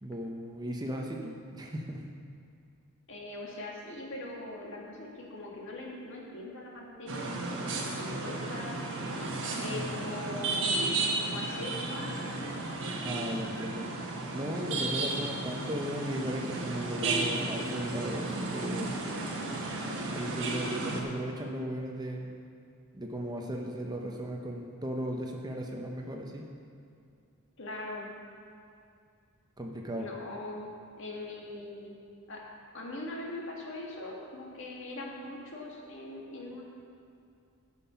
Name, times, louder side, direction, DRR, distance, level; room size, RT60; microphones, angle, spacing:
voice 1, 0.0-2.1 13.0-13.9 14.3-19.0 20.1-22.4 22.9-26.5 29.6-30.1, equal, 20° right, 1 dB, 0.7 m, -36 dB
voice 2, 3.1-8.8 9.6-10.9 11.2-12.6 27.6-28.1 29.9-30.7 31.0-32.0 32.3-32.4 32.7-36.7, left 2 dB, 60° left, -2 dB, 1.8 m, -41 dB
sound 1, 7.1-21.0, right 2 dB, 60° right, 1.2 m, -34 dB
12.5 x 5.6 x 5.6 m, 2.4 s
head